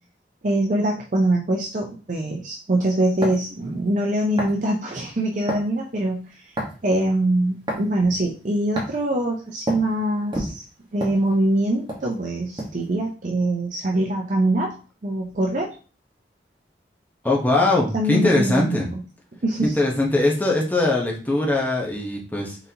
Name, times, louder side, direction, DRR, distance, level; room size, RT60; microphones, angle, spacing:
voice 1, 0.4-6.5 6.8-10.6 10.9-14.7 15.0-15.7 17.9-18.8 19.4-19.8, right 1 dB, 45° right, 0 dB, 0.6 m, -23 dB
sound 1, 3.2-3.5 4.4-4.6 5.5-5.7 6.6-6.9 7.7-7.9 8.8-9.0 9.7-9.9 10.3-11.6 11.9-12.1 12.6-12.8, right 1 dB, 25° right, 1.2 m, -28 dB
voice 2, 17.2-18.9 19.6-22.6, left 2 dB, 10° left, -2 dB, 0.9 m, -21 dB
4.0 x 3.9 x 2.8 m, 0.36 s
head